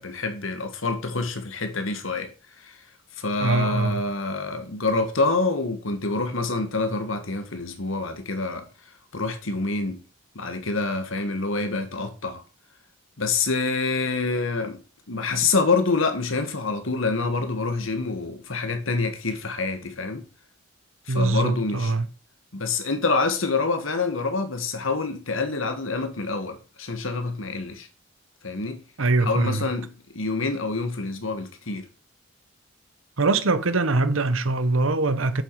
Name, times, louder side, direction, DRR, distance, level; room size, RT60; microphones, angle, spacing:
voice 1, 0.0-2.3 3.2-8.7 9.1-10.0 10.3-12.4 13.2-14.8 15.1-20.2 21.1-21.9 22.5-27.9 28.4-28.8 29.2-29.9 30.1-31.9, left 3 dB, 80° left, 1.7 m, -26 dB
voice 2, 3.4-4.0 21.1-22.1 29.0-29.7 33.2-35.4, right 3 dB, 85° right, 1.0 m, -23 dB
7.7 x 7.4 x 4.9 m
head